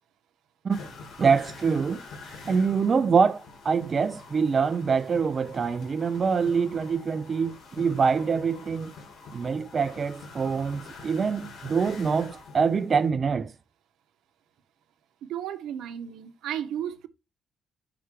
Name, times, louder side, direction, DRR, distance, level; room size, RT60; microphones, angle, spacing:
sound 1, 0.7-13.1, left 4 dB, 80° left, 2.6 m, -46 dB
voice 1, 1.2-2.0 2.4-8.9 9.3-13.5, right 5 dB, 40° right, 0.3 m, -25 dB
voice 2, 15.2-17.1, right 10 dB, 85° right, 0.8 m, -34 dB
5.6 x 3.3 x 5.0 m
cardioid pair, 90°, 0 cm